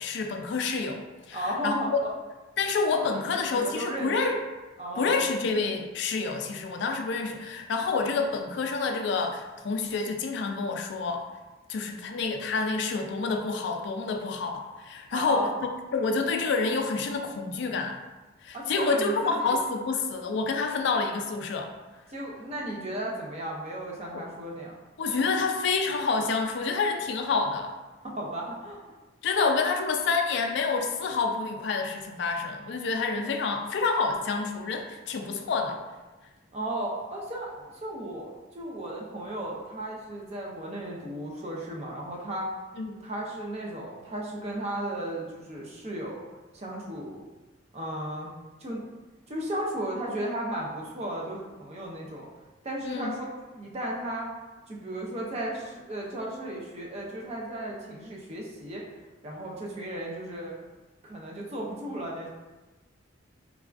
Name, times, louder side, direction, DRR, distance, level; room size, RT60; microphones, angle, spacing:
voice 1, 0.0-1.7 2.6-4.4 5.0-11.3 11.7-15.5 15.9-18.0 18.4-21.7 24.1-24.2 25.0-27.7 29.2-35.8 42.8-43.0 52.8-53.1, left 4 dB, 60° left, 4 dB, 0.3 m, -28 dB
voice 2, 1.3-2.1 2.9-4.2 4.8-5.2 15.1-15.5 18.5-19.6 22.1-24.8 28.0-28.8 29.4-29.5 36.5-42.5 43.0-46.2 46.5-47.2 47.7-48.3 48.6-48.8 49.3-52.3 52.6-54.3 54.7-58.9 59.2-60.6 61.0-62.3, right 1 dB, 30° right, -2 dB, 0.4 m, -35 dB
3.3 x 2.3 x 2.4 m, 1.2 s
head